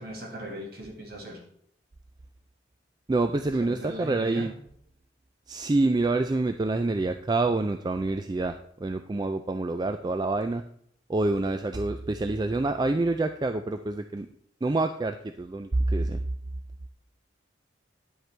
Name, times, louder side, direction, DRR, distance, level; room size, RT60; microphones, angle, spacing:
voice 1, 0.0-1.4 3.6-4.5, equal, 55° right, 2 dB, 1.8 m, -38 dB
voice 2, 3.1-4.5 5.5-10.6 11.1-14.3 14.6-16.2, right 2 dB, 20° right, 8 dB, 0.3 m, -27 dB
10.5 x 7.9 x 3.3 m, 0.66 s
head